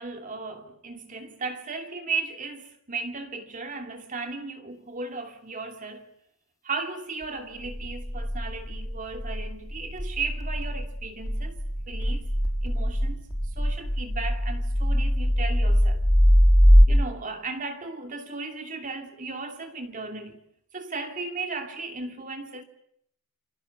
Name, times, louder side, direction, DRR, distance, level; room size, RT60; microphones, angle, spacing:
voice 1, 0.0-6.1 6.6-11.6 11.9-12.2 12.6-13.2 13.6-16.0 16.9-20.4 20.7-22.6, right 4 dB, 40° right, 2.7 m, -35 dB
sound 1, 7.6-16.9, equal, 15° left, 5.8 m, -22 dB
28.5 x 25.5 x 7.0 m
head